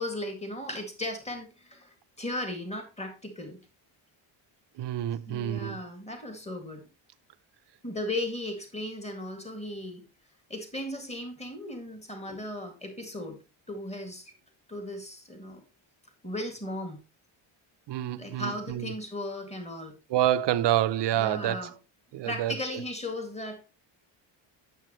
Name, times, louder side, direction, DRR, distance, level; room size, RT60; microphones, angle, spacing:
voice 1, 0.0-3.6 5.3-6.8 7.8-10.0 10.5-13.4 13.7-14.3 14.7-15.6 16.2-17.0 18.2-20.0 21.1-21.7 22.3-23.6, left 1 dB, 15° left, 2.1 m, -36 dB
voice 2, 4.8-5.8 17.9-18.9 20.1-21.7 22.1-22.5, right 12 dB, 55° right, 0.7 m, -27 dB
9.1 x 7.3 x 3.1 m
cardioid pair, 115°, 49 cm